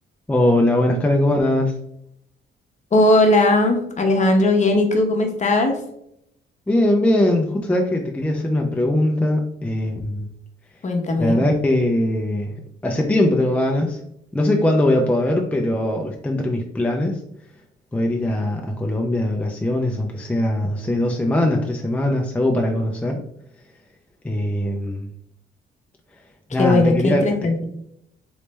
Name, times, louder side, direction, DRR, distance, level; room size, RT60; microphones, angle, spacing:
voice 1, 0.3-1.7 6.7-10.3 11.2-14.0 14.3-17.2 17.9-23.2 24.2-25.1 26.5-27.5, left 1 dB, 5° left, 1 dB, 0.4 m, -21 dB
voice 2, 2.9-5.8 10.8-11.4 26.6-27.7, left 2 dB, 35° left, 3 dB, 0.8 m, -18 dB
3.2 x 3.1 x 3.1 m, 0.75 s
cardioid pair, 90°, 20 cm